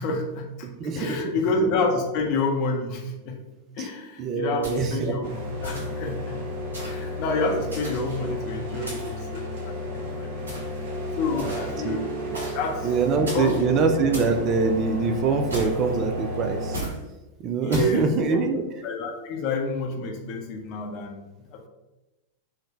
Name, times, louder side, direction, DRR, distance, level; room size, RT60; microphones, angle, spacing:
voice 1, 0.0-0.7 1.0-3.4 3.8-5.3 5.6-6.5 6.8-10.3 11.2-12.1 12.5-12.9 13.3-13.7 17.6-21.7, left 3 dB, 40° left, 2 dB, 0.6 m, -29 dB
voice 2, 0.8-1.2 3.8-3.9 4.2-5.3 11.3-12.0 12.3-12.4 12.8-16.8 17.4-18.6, right 4 dB, 35° right, 6 dB, 0.3 m, -24 dB
sound 1, 4.6-5.1 5.6-6.1 6.7-7.1 7.7-8.3 8.9-9.3 10.5-10.8 11.4-11.8 12.3-12.7 13.3-13.6 14.1-14.4 15.5-16.0 16.7-17.0 17.7-18.0, right 1 dB, 70° right, 1.3 m, -36 dB
sound 2, 5.2-16.8, left 1 dB, 50° right, 0.7 m, -32 dB
3.7 x 2.1 x 3.0 m, 1.0 s
figure-of-eight pair, 90°, 0 cm